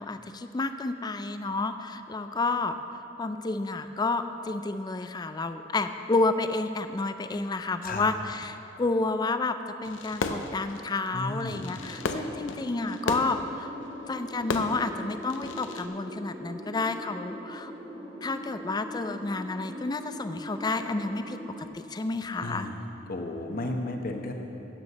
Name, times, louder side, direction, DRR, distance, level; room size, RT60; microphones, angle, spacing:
voice 1, 0.0-9.6 9.8-13.7 14.1-17.7 18.2-22.7, left 3 dB, 20° left, 9 dB, 0.4 m, -30 dB
Fireworks, 9.8-15.9, left 3 dB, 85° left, 0.6 m, -35 dB
voice 2, 11.1-11.7 22.4-22.8 23.1-24.3, left 2 dB, 50° left, 3 dB, 1.0 m, -33 dB
sound 1, 11.8-21.7, equal, 25° right, 1.3 m, -41 dB
13.0 x 9.1 x 4.1 m, 2.9 s
head